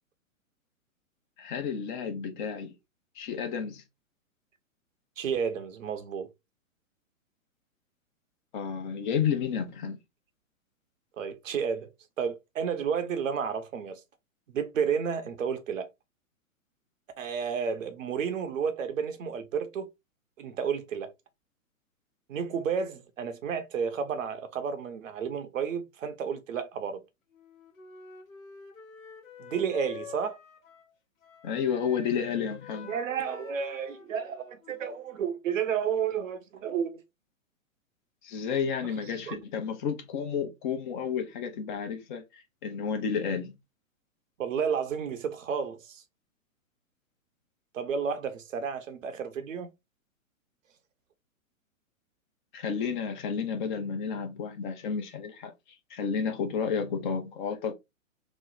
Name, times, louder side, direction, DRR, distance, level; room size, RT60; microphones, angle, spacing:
voice 1, 1.4-2.7 3.1-3.8 8.5-10.0 31.4-32.9 38.2-43.5 52.5-55.5 55.9-57.7, left 6 dB, 35° left, 0.8 m, -31 dB
voice 2, 5.2-6.3 11.2-11.9 12.2-14.0 14.5-15.9 17.2-19.9 20.4-21.1 22.3-27.0 29.4-30.4 32.8-37.0 39.3-39.4 44.4-46.0 47.7-49.7, right 7 dB, 65° right, 0.8 m, -31 dB
Wind instrument woodwind instrument, 27.3-31.0 31.2-35.1, left 6 dB, 75° left, 1.0 m, -48 dB
3.1 x 2.0 x 3.9 m
hypercardioid pair, 120°, 41 cm